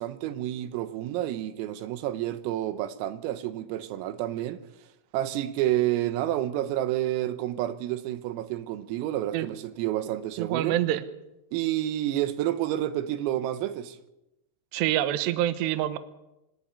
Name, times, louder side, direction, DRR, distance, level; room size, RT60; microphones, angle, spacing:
voice 1, 0.0-4.6 5.1-10.8 11.5-14.0, right 13 dB, 90° right, 3.8 m, -29 dB
voice 2, 10.4-11.0 14.7-16.0, right 13 dB, 70° right, 2.8 m, -26 dB
25.5 x 11.5 x 9.8 m
omnidirectional pair, 6.0 m